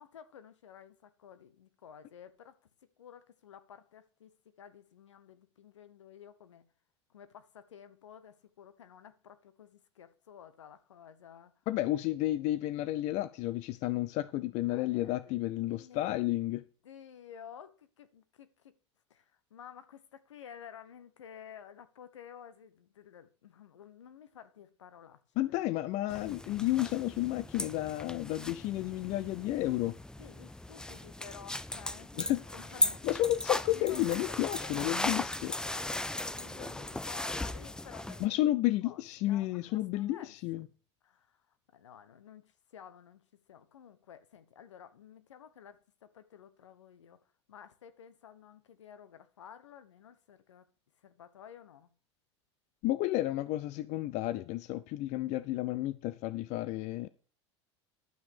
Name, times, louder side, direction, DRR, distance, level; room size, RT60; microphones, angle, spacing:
voice 1, 0.0-2.6 3.0-6.6 7.1-11.5 14.5-16.2 16.8-18.7 19.1-25.2 25.5-26.1 30.2-33.1 33.7-38.5 38.8-40.3 41.0-41.4 41.7-43.2 43.5-47.2 47.5-50.6 51.0-51.9, left 8 dB, 80° left, 1.2 m, -53 dB
voice 2, 11.7-16.6 25.4-30.0 32.2-32.4 33.0-35.5 38.2-40.7 52.8-57.1, left 15 dB, 50° left, 0.7 m, -31 dB
sound 1, 26.1-38.3, left 1 dB, 5° left, 0.6 m, -37 dB
12.0 x 6.0 x 6.6 m
hypercardioid pair, 80°, 15 cm